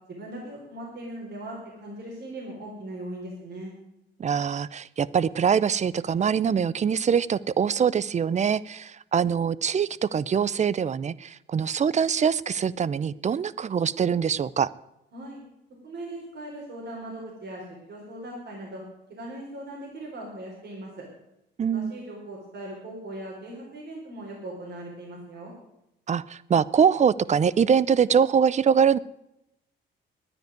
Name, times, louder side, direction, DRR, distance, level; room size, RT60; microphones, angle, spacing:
voice 1, 0.1-3.7 15.1-15.4 15.8-18.8 19.1-21.0 21.7-25.5, right 1 dB, 60° right, -3 dB, 4.4 m, -39 dB
voice 2, 4.2-14.7 21.6-21.9 26.1-29.0, right 7 dB, 35° right, 20 dB, 0.5 m, -23 dB
11.0 x 9.7 x 9.4 m, 0.86 s
cardioid pair, 90°, 20 cm